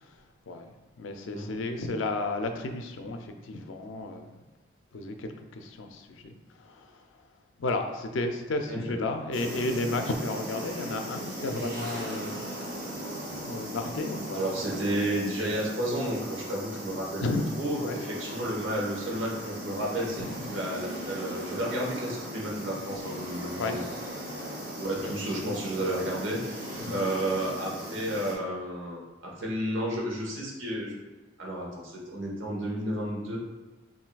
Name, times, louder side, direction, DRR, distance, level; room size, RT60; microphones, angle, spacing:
voice 1, 0.0-4.4 4.9-7.2 7.6-12.4 13.4-14.4 17.2-18.0 20.2-20.4 22.6-22.8 23.6-23.8 25.0-25.6 26.8-27.0, left 2 dB, 80° left, 5 dB, 0.4 m, -33 dB
sound 1, 9.3-28.3, equal, 45° right, 0.9 m, -38 dB
voice 2, 14.3-17.2 17.6-23.8 24.8-26.4 26.7-31.0 31.4-33.4, right 1 dB, 80° right, -3 dB, 1.0 m, -32 dB
5.6 x 2.6 x 2.3 m, 1.2 s
head